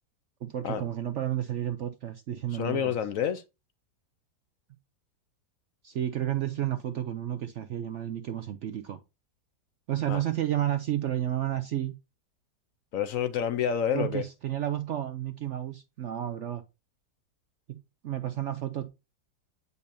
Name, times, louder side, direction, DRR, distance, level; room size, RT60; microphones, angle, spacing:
voice 1, 0.4-2.9 5.8-9.0 9.9-11.9 13.9-16.6 17.7-18.9, right 12 dB, 65° right, 0.7 m, -31 dB
voice 2, 2.5-3.4 10.1-10.2 12.9-14.2, left 8 dB, 65° left, 0.9 m, -28 dB
8.5 x 5.4 x 2.6 m
omnidirectional pair, 1.8 m